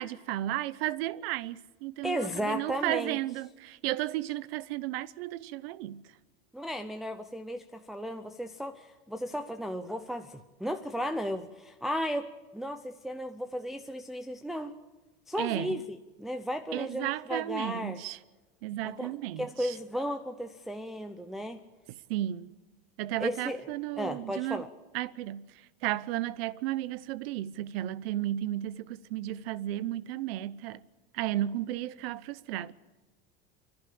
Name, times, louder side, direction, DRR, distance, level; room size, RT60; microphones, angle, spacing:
voice 1, 0.0-6.1 15.4-15.8 16.7-18.2 18.6-19.8 21.9-22.5 23.0-24.6 24.9-30.8 31.1-32.7, right 14 dB, 75° right, 0.9 m, -34 dB
voice 2, 2.0-3.2 6.5-14.7 15.3-18.0 19.0-19.1 19.4-21.6 23.2-24.7, equal, ahead, 0.6 m, -35 dB
30.0 x 11.5 x 8.7 m
supercardioid pair, 145°, 30 cm